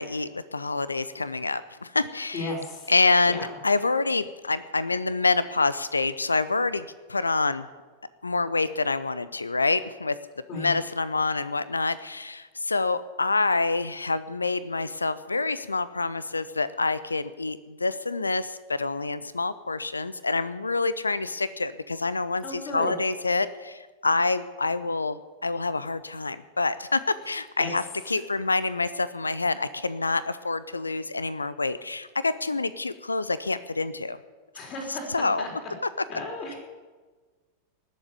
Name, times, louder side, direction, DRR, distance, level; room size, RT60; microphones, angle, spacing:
voice 1, 0.0-2.5 2.9-7.7 8.2-10.1 10.5-34.2 34.9-35.4, left 3 dB, 80° left, 16 dB, 0.6 m, -27 dB
voice 2, 2.3-2.9 3.3-3.5 10.5-10.7 22.4-22.9 27.6-27.7 34.5-35.5 36.1-36.5, left 2 dB, 35° left, 2 dB, 4.8 m, -34 dB
19.0 x 7.5 x 9.7 m, 1.3 s
figure-of-eight pair, 90°, 0 cm